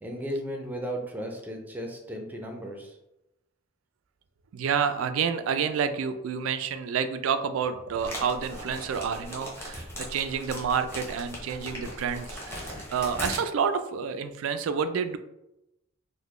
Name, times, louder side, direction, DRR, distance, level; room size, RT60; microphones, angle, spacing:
voice 1, 0.0-3.0, equal, 10° right, 2 dB, 0.5 m, -35 dB
voice 2, 4.5-15.2, right 6 dB, 75° right, 10 dB, 0.3 m, -29 dB
sound 1, 8.0-13.4, equal, 10° left, 0.9 m, -38 dB
3.9 x 2.2 x 3.1 m, 0.89 s
head